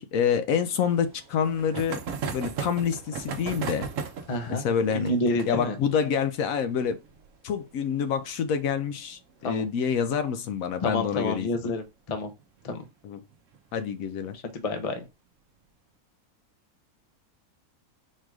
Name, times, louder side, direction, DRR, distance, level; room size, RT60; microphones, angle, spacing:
voice 1, 0.0-2.0 2.3-3.9 4.5-5.1 5.4-7.0 7.4-11.5 13.0-13.2 13.7-14.4, left 7 dB, 70° left, 0.9 m, -27 dB
sound 1, 0.7-9.9 10.2-10.3 10.5-10.6 10.9-11.0 12.4-12.7 13.3-13.8, right 5 dB, 65° right, 1.0 m, -37 dB
voice 2, 4.3-4.6 4.9-5.8 9.4-9.7 10.8-12.3 12.6-12.8 14.5-15.0, left 2 dB, 35° left, 0.6 m, -29 dB
4.4 x 2.5 x 4.7 m
omnidirectional pair, 1.6 m